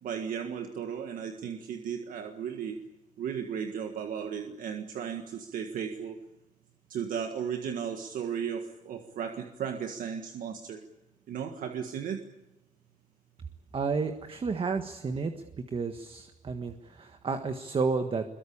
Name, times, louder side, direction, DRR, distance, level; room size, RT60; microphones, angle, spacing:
voice 1, 0.0-2.8 3.2-6.2 6.9-10.8 11.3-12.3, right 7 dB, 80° right, 5 dB, 1.7 m, -35 dB
voice 2, 13.7-15.3 15.7-18.2, right 4 dB, 40° right, 7 dB, 1.6 m, -31 dB
23.0 x 22.5 x 8.7 m, 0.98 s
cardioid pair, 105°, 14 cm